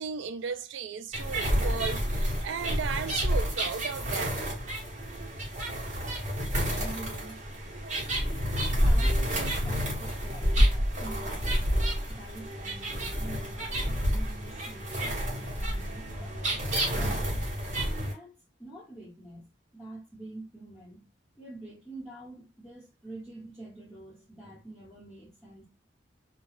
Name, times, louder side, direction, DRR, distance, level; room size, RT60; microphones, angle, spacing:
voice 1, 0.0-4.5, right 6 dB, 70° right, 0.4 m, -35 dB
sound 1, 1.1-18.1, equal, 35° right, 1.0 m, -29 dB
voice 2, 6.8-7.4 8.2-11.7 12.1-16.7 16.9-17.4 17.7-18.3 18.6-21.0 21.4-25.7, right 2 dB, 5° left, 1.2 m, -46 dB
2.3 x 2.2 x 3.1 m
head